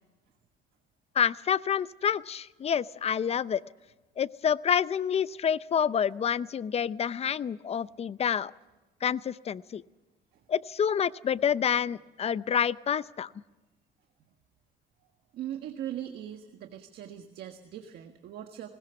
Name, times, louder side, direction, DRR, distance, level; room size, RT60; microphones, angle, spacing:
voice 1, 1.1-3.6 4.2-8.5 9.0-9.8 10.5-13.3, left 8 dB, 40° left, 17 dB, 0.6 m, -28 dB
voice 2, 15.3-18.7, right 11 dB, 70° right, 6 dB, 1.5 m, -40 dB
20.0 x 20.0 x 7.1 m, 1.1 s
cardioid pair, 110°, 17 cm